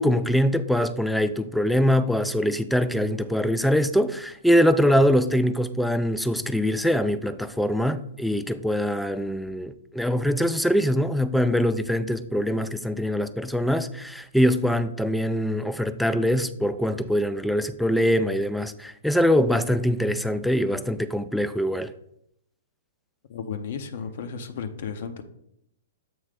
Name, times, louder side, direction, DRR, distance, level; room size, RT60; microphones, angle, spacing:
voice 1, 0.0-21.9, equal, ahead, 0.4 m, -23 dB
voice 2, 23.3-25.2, left 6 dB, 55° left, 0.7 m, -34 dB
7.8 x 3.2 x 5.1 m
figure-of-eight pair, 110°, 0 cm